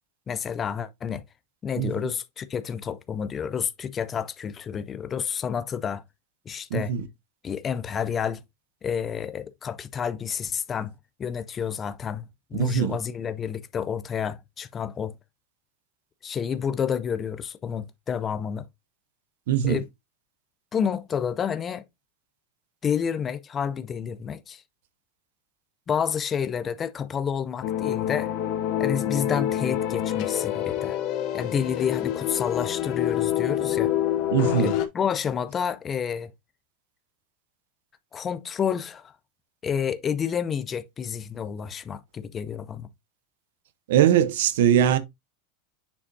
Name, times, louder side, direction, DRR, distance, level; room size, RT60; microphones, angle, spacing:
voice 1, 0.3-1.2 1.6-6.0 6.5-6.9 7.4-8.4 8.8-10.9 11.2-15.1 16.2-18.6 19.6-19.8 20.7-21.8 22.8-24.6 25.9-28.3 28.8-31.0 31.3-33.9 34.6-36.3 38.1-39.1 39.6-42.9, left 7 dB, 25° left, 0.5 m, -29 dB
voice 2, 6.7-7.1 12.5-13.0 19.5-19.8 34.3-34.7 43.9-45.0, right 9 dB, 75° right, 0.8 m, -21 dB
sound 1, 27.6-34.9, left 11 dB, 50° left, 1.0 m, -27 dB
7.0 x 5.0 x 2.6 m
supercardioid pair, 120°, 0 cm